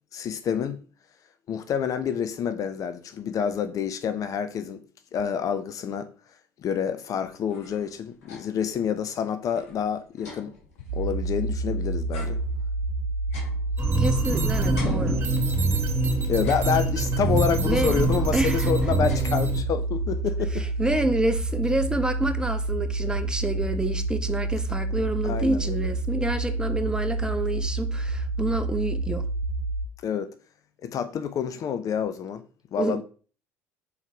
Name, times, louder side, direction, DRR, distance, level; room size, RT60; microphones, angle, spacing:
voice 1, 0.1-0.8 1.5-4.8 5.1-6.1 6.6-10.5 10.9-12.4 16.3-20.7 25.2-25.9 30.0-30.3 30.8-32.4 32.7-33.0, left 7 dB, 45° left, 0.7 m, -28 dB
sound 1, 7.3-8.7 9.1-9.2 9.4-11.7 12.1-14.3 14.7-15.8 16.3-17.2 17.8-18.3 18.6-19.8, left 4 dB, 80° left, 2.4 m, -45 dB
sound 2, 10.9-29.9, right 2 dB, 80° right, 1.0 m, -28 dB
sound 3, 13.8-19.6, right 2 dB, 30° right, 2.4 m, -25 dB
voice 2, 14.0-15.2 17.6-17.9 18.3-18.7 20.5-29.3 32.8-33.0, right 2 dB, 10° right, 1.0 m, -28 dB
5.6 x 4.5 x 4.6 m
hypercardioid pair, 60°, 8 cm